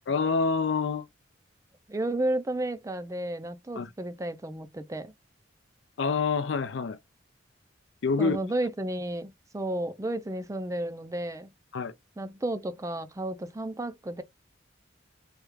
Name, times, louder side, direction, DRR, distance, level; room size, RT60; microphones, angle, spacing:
voice 1, 0.1-1.1 3.8-3.9 6.0-7.0 8.0-8.4 11.7-11.9, left 4 dB, 65° left, 0.4 m, -26 dB
voice 2, 1.9-5.1 8.2-11.5 12.2-14.2, right 1 dB, 15° right, 0.4 m, -32 dB
3.3 x 2.3 x 3.1 m
head